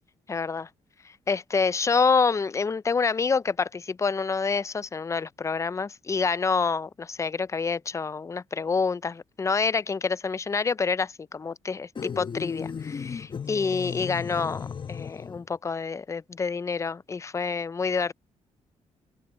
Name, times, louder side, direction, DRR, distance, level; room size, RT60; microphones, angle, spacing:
voice 1, 0.3-0.7 1.3-18.1, left 5 dB, 25° left, 0.4 m, -27 dB
sound 1, 12.0-15.5, left 6 dB, 40° left, 1.1 m, -35 dB
open air
cardioid pair, 95°, 13 cm